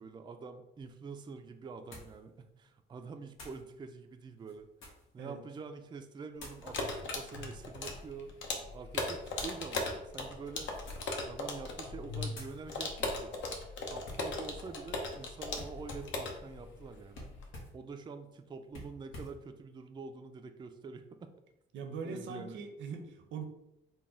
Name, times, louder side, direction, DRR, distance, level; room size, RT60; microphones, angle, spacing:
voice 1, 0.0-4.7 5.1-8.3 8.7-10.7 11.3-13.3 13.9-17.3 17.7-21.3 22.0-22.7, right 4 dB, 25° right, 7 dB, 0.3 m, -46 dB
sound 1, 0.8-0.9 1.9-2.2 3.3-3.7 4.4-5.1 6.3-6.7 7.4-8.1 9.3-9.6 10.7-11.2 11.6-11.9 12.3-12.6 14.0-14.3 15.5-16.2 17.1-17.8 18.7-19.4, left 1 dB, 90° left, 1.1 m, -49 dB
sound 2, 6.6-17.5, left 3 dB, 70° left, 0.8 m, -38 dB
voice 2, 21.7-23.5, right 5 dB, 75° right, 5 dB, 0.7 m, -41 dB
3.9 x 2.2 x 3.7 m, 0.87 s
cardioid pair, 90°, 20 cm